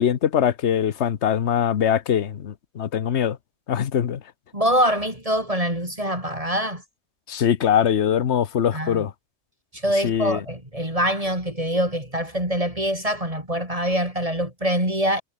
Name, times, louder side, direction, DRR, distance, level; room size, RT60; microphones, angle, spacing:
voice 1, 0.0-3.4 3.7-4.2 7.3-9.1 10.0-10.4, left 9 dB, 65° left, 1.3 m, -22 dB
voice 2, 4.5-6.8 8.7-9.0 9.8-15.2, equal, 30° right, 6.2 m, -24 dB
omnidirectional pair, 1.2 m